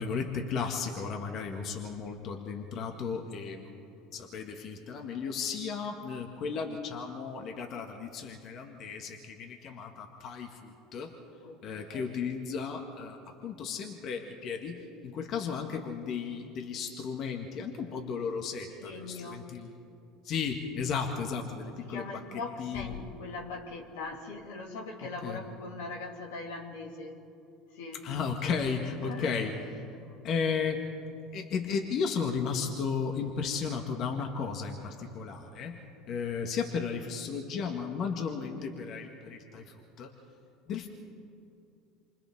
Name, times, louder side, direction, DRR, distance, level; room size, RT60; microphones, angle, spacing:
voice 1, 0.0-3.8 4.1-11.1 11.6-19.7 20.2-22.1 22.6-22.9 25.2-25.5 28.0-29.5 30.2-30.8 31.3-40.1 40.7-40.9, left 5 dB, 50° left, 3 dB, 2.0 m, -34 dB
voice 2, 11.4-12.2 18.8-19.5 21.8-27.2 27.7-28.0 29.0-29.5, left 3 dB, 80° left, 1 dB, 2.6 m, -41 dB
28.0 x 25.5 x 3.8 m, 2.8 s
hypercardioid pair, 80°, 0 cm